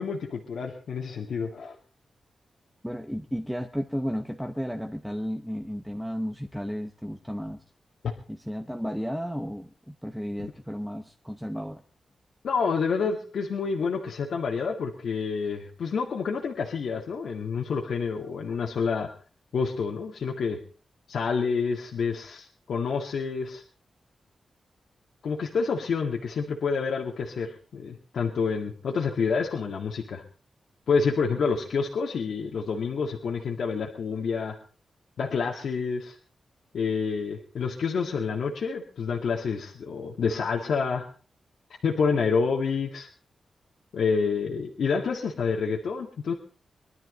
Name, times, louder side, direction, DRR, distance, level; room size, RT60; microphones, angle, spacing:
voice 1, 0.0-1.7 12.4-19.1 19.5-20.6 21.1-23.6 25.2-30.2 30.9-34.6 35.2-36.2 36.7-41.1 41.8-43.1 43.9-46.3, left 5 dB, 80° left, 0 dB, 1.9 m, -28 dB
voice 2, 2.8-7.6 8.3-11.8, equal, ahead, 5 dB, 0.8 m, -33 dB
23.0 x 12.0 x 4.0 m, 0.39 s
wide cardioid pair, 175°, 0 cm